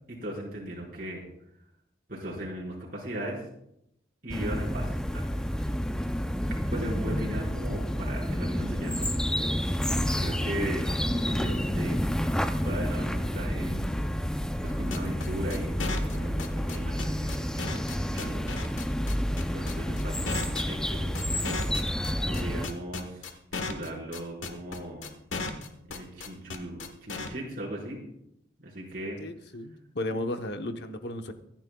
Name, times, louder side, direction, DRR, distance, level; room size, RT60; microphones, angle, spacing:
voice 1, 0.1-1.2 2.1-3.5 4.2-5.6 6.5-9.1 10.2-12.0 12.6-13.8 14.6-18.5 19.4-21.6 22.3-25.0 25.9-28.0 28.6-29.2, right 1 dB, 45° right, -5 dB, 5.0 m, -38 dB
sound 1, 4.3-22.7, equal, 5° left, 0.5 m, -29 dB
sound 2, 14.9-27.3, left 4 dB, 85° left, 1.4 m, -35 dB
voice 2, 29.2-31.3, left 1 dB, 55° left, 7 dB, 1.0 m, -34 dB
24.5 x 10.5 x 2.3 m, 0.78 s
head